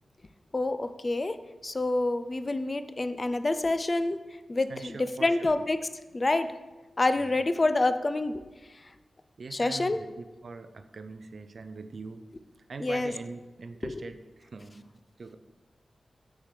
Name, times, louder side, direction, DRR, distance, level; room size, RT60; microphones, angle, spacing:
voice 1, 0.5-1.4 1.6-4.2 4.5-5.8 6.1-6.5 7.0-8.4 9.5-10.0 12.8-13.1 13.8-14.1, left 2 dB, 30° left, 11 dB, 0.3 m, -27 dB
voice 2, 4.7-5.5 7.2-7.5 9.4-12.2 12.7-15.4, right 4 dB, 55° right, 9 dB, 0.4 m, -43 dB
6.7 x 6.4 x 3.2 m, 1.2 s
wide cardioid pair, 165°, 0 cm